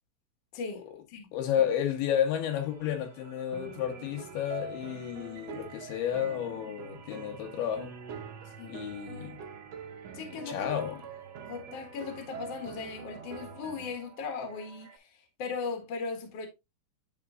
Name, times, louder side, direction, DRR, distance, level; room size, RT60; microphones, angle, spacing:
voice 1, 0.5-0.8 1.1-1.3 8.6-8.8 10.1-11.0 11.5-16.5, left 5 dB, 55° left, 2.0 m, -38 dB
voice 2, 1.3-7.9 8.6-9.4 10.3-11.0, left 9 dB, 80° left, 3.0 m, -31 dB
sound 1, 2.3-15.0, right 6 dB, 45° right, 1.4 m, -54 dB
sound 2, 3.5-14.0, right 6 dB, 85° right, 1.4 m, -45 dB
10.5 x 4.5 x 2.4 m
omnidirectional pair, 4.5 m